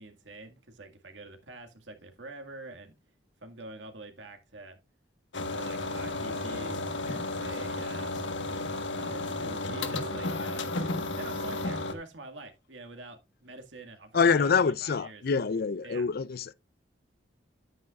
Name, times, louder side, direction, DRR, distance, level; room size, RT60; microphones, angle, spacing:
voice 1, 0.0-2.9 3.4-4.8 5.5-8.5 9.0-10.7 11.2-15.2 15.8-16.1, right 2 dB, 90° right, 2.0 m, -46 dB
sound 1, 5.3-11.9, left 2 dB, 85° left, 1.4 m, -33 dB
voice 2, 14.1-16.5, left 5 dB, 55° left, 0.5 m, -25 dB
11.0 x 9.2 x 2.4 m
head